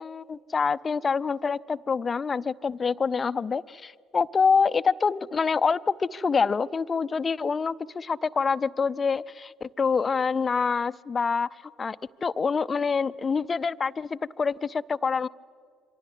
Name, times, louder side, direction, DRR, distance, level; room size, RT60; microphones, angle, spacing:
voice 1, 0.0-11.5 11.8-15.3, left 5 dB, 30° left, 17 dB, 0.6 m, -26 dB
26.5 x 24.5 x 8.2 m, 2.2 s
figure-of-eight pair, 55°, 0 cm